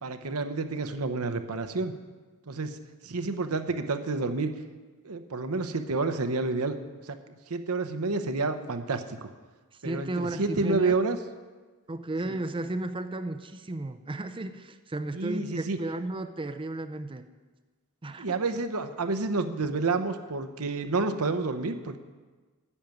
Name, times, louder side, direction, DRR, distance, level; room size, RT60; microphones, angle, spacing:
voice 1, 0.0-1.9 2.5-2.8 3.0-4.5 5.0-6.7 7.0-7.2 7.5-9.3 9.8-11.2 12.2-12.4 15.1-15.8 18.2-22.0, right 3 dB, 80° right, 9 dB, 0.9 m, -29 dB
voice 2, 9.8-11.0 11.9-17.3 18.0-18.3, right 2 dB, 25° right, 9 dB, 0.5 m, -34 dB
10.0 x 7.2 x 9.2 m, 1.3 s
head